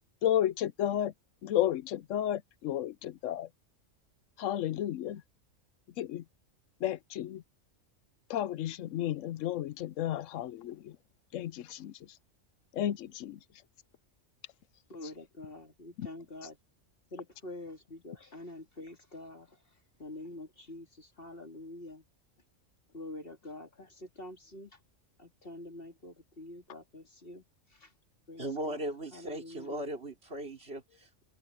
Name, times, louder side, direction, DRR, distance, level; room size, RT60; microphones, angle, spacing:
voice 1, 0.2-1.1 1.4-3.5 4.4-5.2 6.0-6.2 6.8-7.4 8.3-10.9 11.3-11.9 12.8-13.4 16.0-16.1, left 11 dB, 90° left, 1.0 m, -32 dB
voice 2, 14.9-16.6 17.1-19.5 20.0-22.0 22.9-24.7 25.2-27.4 27.8-27.9 28.3-28.8 29.1-29.8, left 1 dB, 50° left, 2.9 m, -46 dB
voice 3, 28.4-31.2, right 1 dB, 55° right, 4.2 m, -38 dB
omnidirectional pair, 1.3 m